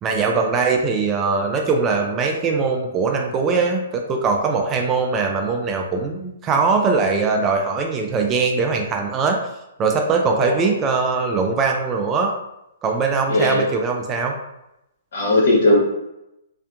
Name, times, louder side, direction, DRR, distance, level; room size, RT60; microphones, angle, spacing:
voice 1, 0.0-9.4 9.8-12.3 12.8-14.3, right 4 dB, 25° right, 2 dB, 0.3 m, -21 dB
voice 2, 10.3-10.7 13.3-13.7 15.1-15.8, left 2 dB, 60° left, -3 dB, 1.1 m, -18 dB
2.6 x 2.1 x 2.5 m, 0.87 s
hypercardioid pair, 130°, 0 cm